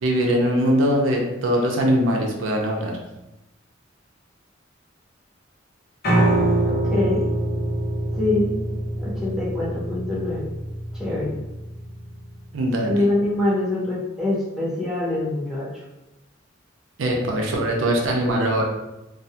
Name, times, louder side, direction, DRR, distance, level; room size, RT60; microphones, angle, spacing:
voice 1, 0.0-2.9 12.5-12.9 17.0-18.6, equal, 85° right, 0 dB, 0.5 m, -21 dB
Piano, 6.0-12.2, right 1 dB, 55° left, 0.9 m, -24 dB
voice 2, 6.6-7.3 8.1-8.5 9.0-10.5 10.9-11.4 12.8-15.7, left 2 dB, 5° right, -8 dB, 0.8 m, -24 dB
2.3 x 2.2 x 2.7 m, 0.95 s
head